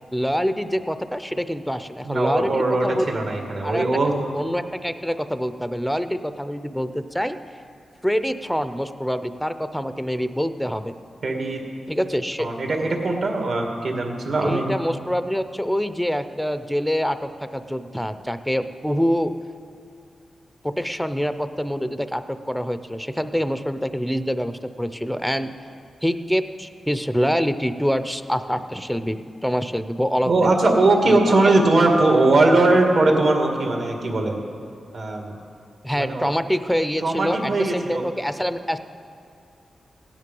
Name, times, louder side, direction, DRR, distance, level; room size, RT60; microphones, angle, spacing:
voice 1, 0.1-3.1 3.6-3.9 4.3-7.4 8.0-10.9 11.9-12.5 14.4-19.3 20.6-25.5 26.0-30.5 31.1-31.5 35.8-38.8, equal, ahead, 11 dB, 0.5 m, -25 dB
voice 2, 2.0-4.1 11.2-11.6 12.4-14.7 30.3-34.4 34.9-35.3 35.9-36.3 37.0-38.0, right 2 dB, 60° right, 2 dB, 1.9 m, -20 dB
16.5 x 9.7 x 5.3 m, 2.4 s
wide cardioid pair, 125°, 0 cm